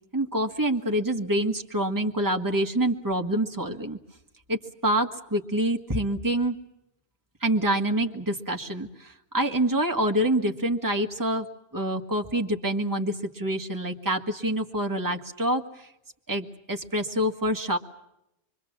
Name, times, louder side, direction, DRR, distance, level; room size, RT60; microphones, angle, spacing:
voice 1, 0.1-4.0 4.5-6.6 7.4-11.5 11.7-15.9 16.3-17.8, right 1 dB, 15° right, 3 dB, 1.7 m, -26 dB
25.5 x 24.0 x 7.3 m, 0.85 s
omnidirectional pair, 1.3 m